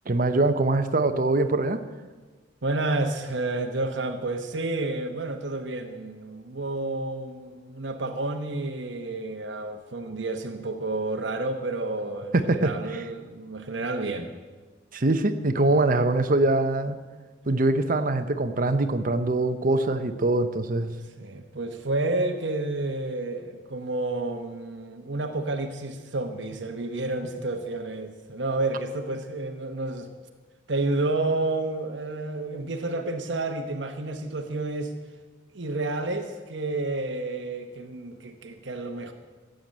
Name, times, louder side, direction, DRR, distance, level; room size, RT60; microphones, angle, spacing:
voice 1, 0.1-1.8 12.3-13.0 14.9-17.0 17.5-20.9, right 2 dB, 45° right, 9 dB, 0.8 m, -23 dB
voice 2, 2.6-14.3 21.2-30.1 30.7-34.9 35.5-39.1, right 2 dB, 65° right, 5 dB, 1.0 m, -30 dB
14.5 x 7.8 x 8.8 m, 1.3 s
head